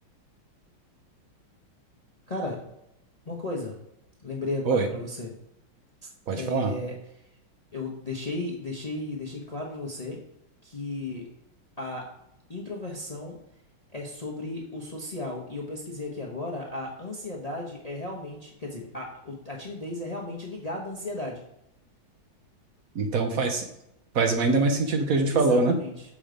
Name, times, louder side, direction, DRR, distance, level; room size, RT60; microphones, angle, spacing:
voice 1, 2.3-2.6 3.3-3.7 4.2-5.3 6.0-6.1 6.4-7.0 7.7-10.2 10.6-11.3 11.8-12.0 12.5-13.4 13.9-21.4 25.3-25.9, left 2 dB, 60° left, -1 dB, 0.4 m, -34 dB
voice 2, 6.3-6.7 22.9-23.6 24.1-25.8, right 3 dB, 60° right, 4 dB, 1.0 m, -23 dB
7.0 x 3.8 x 5.0 m, 0.80 s
omnidirectional pair, 2.3 m